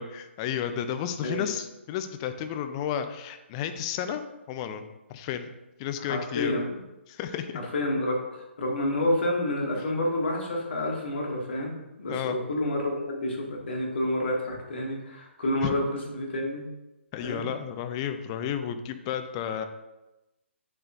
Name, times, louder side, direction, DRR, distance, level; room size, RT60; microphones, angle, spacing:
voice 1, 0.0-4.2 4.5-4.8 5.1-5.5 5.8-6.5 7.1-7.6 12.1-12.4 15.6-15.7 17.1-19.7, left 9 dB, 25° left, 8 dB, 0.5 m, -32 dB
voice 2, 1.2-1.5 6.0-6.8 7.5-16.6 17.2-17.4, left 1 dB, 55° left, -1 dB, 2.1 m, -29 dB
8.8 x 7.7 x 2.6 m, 0.99 s
figure-of-eight pair, 130°, 7 cm